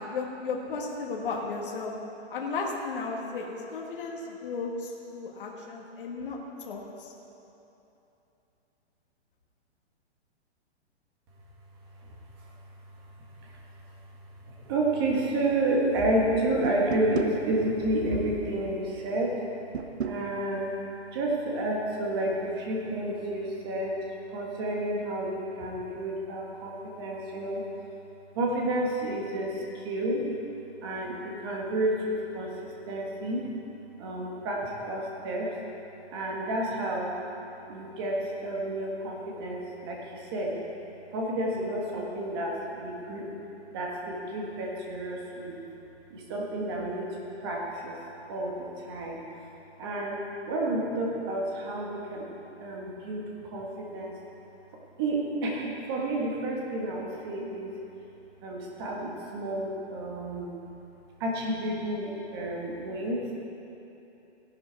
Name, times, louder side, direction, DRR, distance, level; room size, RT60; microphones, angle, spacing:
voice 1, 0.0-1.9 2.3-7.1, left 4 dB, 50° left, -1 dB, 1.7 m, -34 dB
voice 2, 12.0-12.5 13.4-13.6 14.4-19.3 20.0-20.7 21.1-24.0 24.3-27.6 28.3-30.3 30.8-33.5 34.0-35.5 36.1-37.1 37.7-40.5 41.1-43.3 43.7-45.6 46.1-47.2 47.4-48.0 48.3-49.2 49.8-52.3 52.6-54.1 55.0-57.7 58.4-60.5 61.2-63.3, right 1 dB, 20° right, -2 dB, 1.6 m, -30 dB
sound 1, 16.6-17.4 19.7-20.2, right 7 dB, 70° right, 0.9 m, -31 dB
15.5 x 11.5 x 4.6 m, 3.0 s
hypercardioid pair, 180°, 34 cm